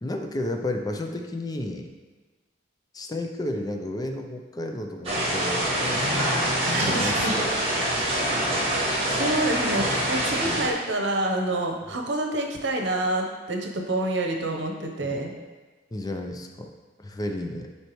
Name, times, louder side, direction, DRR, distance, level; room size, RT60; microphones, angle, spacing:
voice 1, 0.0-1.9 2.9-6.3 7.0-7.8 10.4-10.6 11.9-12.0 15.0-15.2 15.9-16.7 17.0-17.7, left 1 dB, 20° left, 4 dB, 0.5 m, -32 dB
sound 1, 5.0-10.7, right 1 dB, 35° right, 1.6 m, -25 dB
voice 2, 6.7-7.3 8.1-8.5 9.0-15.3, right 1 dB, 90° right, 2 dB, 0.9 m, -27 dB
8.0 x 4.5 x 3.1 m, 1.3 s
head